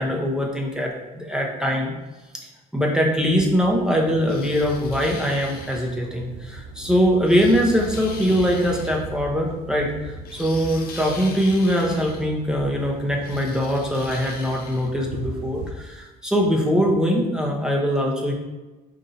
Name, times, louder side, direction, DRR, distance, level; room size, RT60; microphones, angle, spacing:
voice 1, 0.0-1.9 2.7-18.3, equal, 5° right, -1 dB, 0.7 m, -22 dB
sound 1, 3.3-15.7, right 3 dB, 80° right, 0.5 m, -38 dB
sound 2, 4.3-5.9 7.2-9.0 10.3-12.3 13.2-14.9, left 4 dB, 65° left, 0.8 m, -41 dB
3.8 x 2.7 x 4.0 m, 1.2 s
cardioid pair, 110°, 17 cm